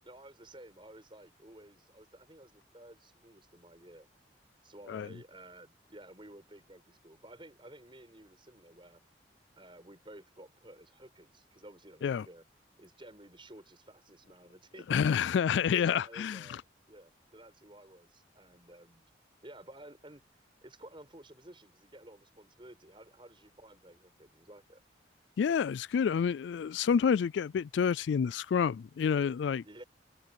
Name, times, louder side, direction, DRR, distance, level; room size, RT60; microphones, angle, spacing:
voice 1, 0.0-4.1 4.6-9.0 9.6-12.4 12.8-16.6 16.9-19.0 19.4-20.2 20.6-24.8 29.6-29.8, right 1 dB, 25° right, 6.3 m, -53 dB
voice 2, 14.9-16.6 25.4-29.6, left 7 dB, 75° left, 0.3 m, -28 dB
head